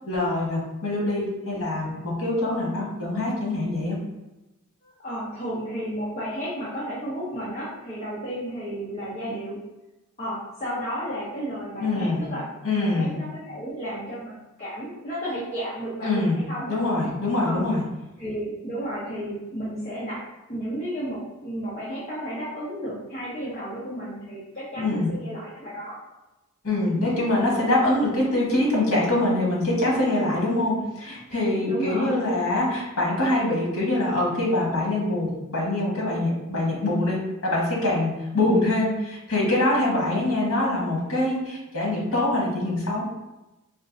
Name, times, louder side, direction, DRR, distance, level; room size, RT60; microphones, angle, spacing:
voice 1, 0.1-4.0 11.8-12.3 12.6-13.2 16.0-16.4 16.7-17.8 24.8-25.1 26.6-43.0, left 2 dB, 80° left, -4 dB, 1.2 m, -24 dB
voice 2, 4.8-9.6 10.2-12.4 12.8-16.8 17.4-17.6 18.2-20.2 20.5-26.0 31.6-32.1 38.4-38.6, equal, 30° left, -10 dB, 0.8 m, -33 dB
4.4 x 2.5 x 2.6 m, 1.0 s
head